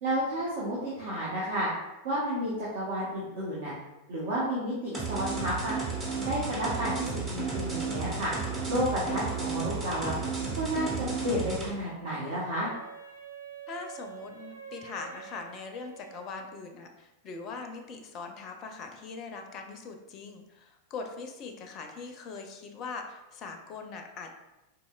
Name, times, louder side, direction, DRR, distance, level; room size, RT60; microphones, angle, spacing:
voice 1, 0.0-1.7 2.0-3.7 4.1-5.7 6.3-8.3 8.7-10.1 10.5-12.7, equal, 55° right, -7 dB, 0.8 m, -31 dB
sound 1, 4.9-11.7, right 4 dB, 20° right, 0.8 m, -33 dB
Wind instrument woodwind instrument, 12.6-16.7, right 7 dB, 80° right, 0.4 m, -47 dB
voice 2, 13.7-24.3, left 4 dB, 35° left, 5 dB, 0.4 m, -41 dB
4.1 x 2.9 x 2.3 m, 0.99 s
figure-of-eight pair, 90°, 0 cm